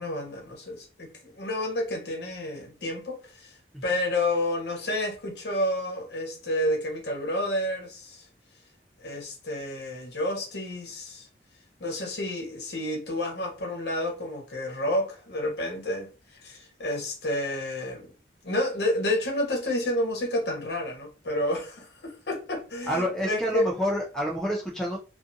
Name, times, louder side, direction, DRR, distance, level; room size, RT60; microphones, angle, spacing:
voice 1, 0.0-3.6 3.8-8.3 9.0-11.3 11.8-18.1 18.4-23.7, left 1 dB, 70° left, 0.9 m, -30 dB
voice 2, 22.9-25.0, equal, 5° left, 0.3 m, -28 dB
2.4 x 2.4 x 2.6 m
head